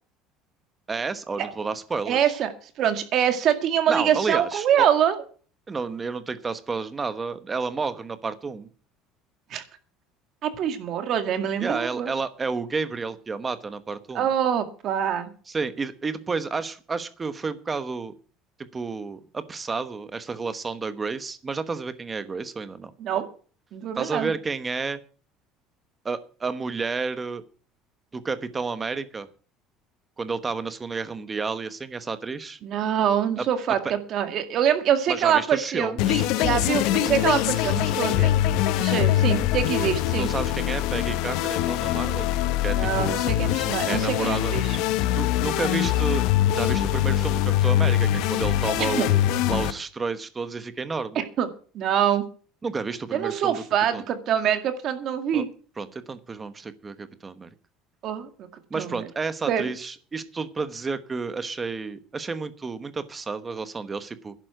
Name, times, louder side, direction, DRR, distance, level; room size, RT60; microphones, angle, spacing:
voice 1, 0.9-2.3 3.9-4.9 5.7-8.7 11.6-14.3 15.5-18.1 18.7-22.9 23.9-25.0 26.0-27.4 28.1-29.3 30.2-32.6 33.4-33.5 33.8-33.9 35.1-36.3 40.1-42.3 42.6-43.1 43.8-44.5 45.1-46.2 46.5-49.2 49.5-51.2 52.6-53.6 53.9-54.0 55.3-55.4 55.8-57.5 58.7-64.3, right 4 dB, 15° right, 12 dB, 1.0 m, -31 dB
voice 2, 2.1-2.5 2.8-5.2 9.5-9.6 10.4-12.1 14.1-15.3 23.0-23.3 23.7-24.3 32.6-36.0 36.4-38.3 38.8-40.3 42.7-44.8 48.8-49.0 51.2-51.5 51.7-52.3 53.1-55.5 58.0-58.5 58.8-59.0 59.5-59.7, right 9 dB, 40° right, 8 dB, 2.0 m, -24 dB
sound 1, 36.0-49.7, left 12 dB, 65° left, 1.0 m, -23 dB
11.0 x 8.5 x 7.9 m, 0.41 s
cardioid pair, 165°, 0 cm